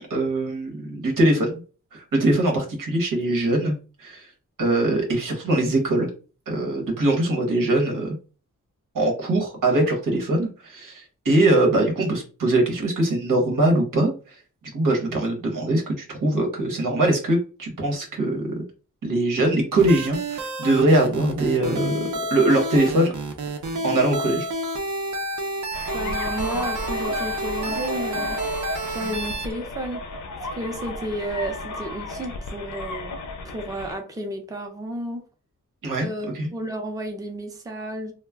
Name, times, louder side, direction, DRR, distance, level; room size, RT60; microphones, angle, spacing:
voice 1, 0.0-1.6 1.9-4.3 4.6-6.1 6.5-8.2 8.9-18.6 19.0-23.1 23.8-24.5 35.8-36.1 36.3-36.5, right 1 dB, 90° right, 0 dB, 1.0 m, -22 dB
sound 1, 19.8-29.5, right 1 dB, 70° right, 0.6 m, -30 dB
sound 2, 25.7-34.0, left 2 dB, 70° left, 0.5 m, -33 dB
voice 2, 25.9-28.4 28.9-30.0 30.6-33.2 33.4-35.2 36.0-38.1, right 1 dB, 10° right, 3 dB, 0.4 m, -32 dB
2.3 x 2.0 x 3.4 m, 0.35 s
wide cardioid pair, 155°, 31 cm